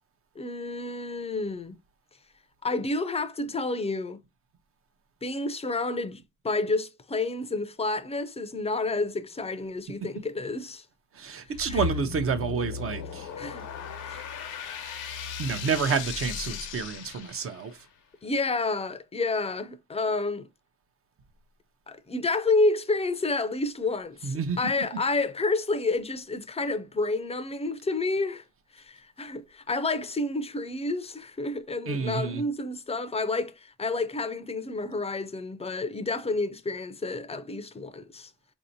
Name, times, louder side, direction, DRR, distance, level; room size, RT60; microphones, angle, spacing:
voice 1, 0.4-1.8 2.6-4.2 5.2-10.8 11.7-11.8 13.4-13.7 14.1-14.2 18.2-20.5 21.9-28.4 28.7-38.3, left 3 dB, 20° left, 0.5 m, -29 dB
voice 2, 11.1-13.3 15.4-17.9 24.2-24.6 31.9-32.4, right 5 dB, 50° right, 0.7 m, -29 dB
sound 1, 11.5-17.8, left 6 dB, 90° left, 0.9 m, -36 dB
4.3 x 2.8 x 2.7 m
cardioid pair, 90°, 30 cm